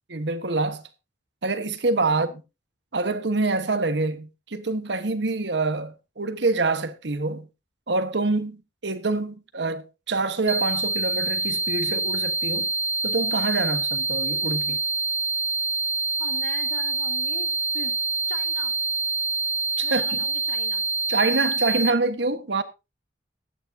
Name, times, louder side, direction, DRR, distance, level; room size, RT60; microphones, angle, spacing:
voice 1, 0.1-0.9 1.4-2.3 2.9-7.5 7.9-12.7 13.0-14.8 19.8-20.2 21.1-22.6, right 3 dB, 70° right, 1.2 m, -26 dB
sound 1, 10.5-21.9, right 3 dB, 10° right, 0.5 m, -26 dB
voice 2, 16.2-17.9 18.3-18.7 19.8-20.9, left 2 dB, 80° left, 2.5 m, -41 dB
15.0 x 11.0 x 2.7 m
head